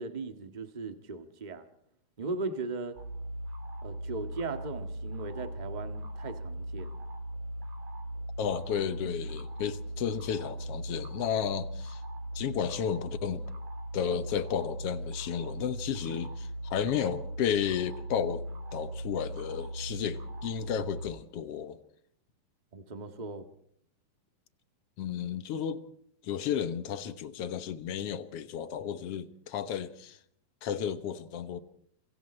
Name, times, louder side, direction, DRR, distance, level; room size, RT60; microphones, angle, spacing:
voice 1, 0.0-1.7 2.2-3.0 3.8-7.0 22.7-23.4, right 3 dB, 55° right, 0.4 m, -38 dB
sound 1, 3.0-21.1, right 1 dB, 85° right, 4.9 m, -39 dB
voice 2, 8.4-12.0 12.3-13.5 13.9-18.4 18.7-21.8 25.0-25.8 26.2-30.2 30.6-31.6, left 8 dB, 60° left, 1.6 m, -33 dB
27.0 x 24.0 x 4.4 m
omnidirectional pair, 4.0 m